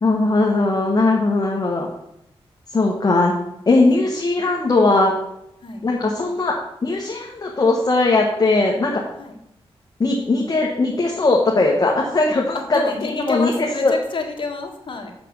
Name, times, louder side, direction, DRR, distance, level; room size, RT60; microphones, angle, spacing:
voice 1, 0.0-1.9 2.7-3.3 3.7-5.1 5.8-6.5 6.8-9.0 10.0-13.9, left 2 dB, 40° left, -1 dB, 1.2 m, -19 dB
voice 2, 12.7-15.1, left 4 dB, 55° left, 2 dB, 1.7 m, -28 dB
6.0 x 5.9 x 6.8 m, 0.81 s
wide cardioid pair, 90°, 10 cm